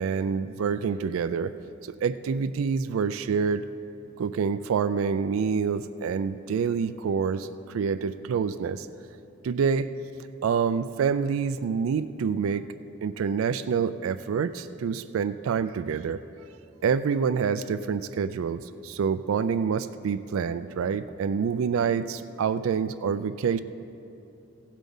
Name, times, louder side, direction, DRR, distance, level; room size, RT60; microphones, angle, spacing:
voice 1, 0.0-1.5 1.8-3.6 4.2-8.9 9.4-9.9 10.4-12.7 13.0-16.2 16.8-23.6, right 6 dB, 80° right, 12 dB, 0.3 m, -27 dB
15.5 x 7.4 x 5.4 m, 2.7 s
head